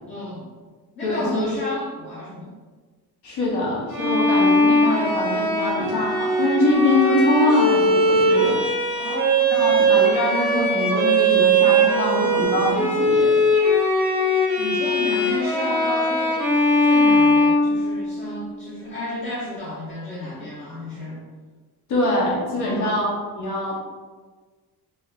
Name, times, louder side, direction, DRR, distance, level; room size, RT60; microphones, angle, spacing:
voice 1, 0.1-0.5 1.0-2.5 8.9-9.8 14.6-16.4 16.8-21.2 22.6-23.0, equal, 30° left, -8 dB, 0.6 m, -32 dB
voice 2, 1.0-1.5 3.2-8.6 9.5-13.3 21.9-23.7, left 1 dB, 80° left, -4 dB, 1.0 m, -23 dB
Bowed string instrument, 3.9-18.2, right 1 dB, 5° right, 0.8 m, -20 dB
3.2 x 2.4 x 3.0 m, 1.4 s
cardioid pair, 180°, 39 cm